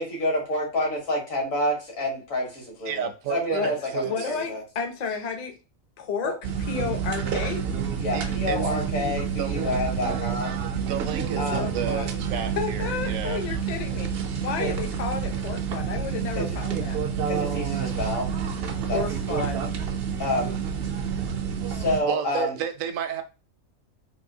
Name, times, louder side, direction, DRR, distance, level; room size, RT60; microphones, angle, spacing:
voice 1, 0.0-4.6 6.2-6.3 8.0-10.6 11.4-11.7 14.6-14.7 16.4-16.5 17.3-18.3 18.9-19.0 20.2-20.6 21.7-22.6, left 1 dB, 75° left, 1.9 m, -28 dB
voice 2, 2.9-4.3 8.1-8.6 9.4-9.5 10.8-13.4 22.1-23.2, right 8 dB, 80° right, 1.0 m, -31 dB
voice 3, 4.0-5.5 6.0-6.4 6.7-7.6 11.5-12.2 12.6-17.0 18.9-19.7, left 6 dB, 45° left, 0.5 m, -32 dB
sound 1, 6.4-22.0, right 7 dB, 60° right, 0.6 m, -29 dB
3.6 x 2.5 x 2.7 m
omnidirectional pair, 1.4 m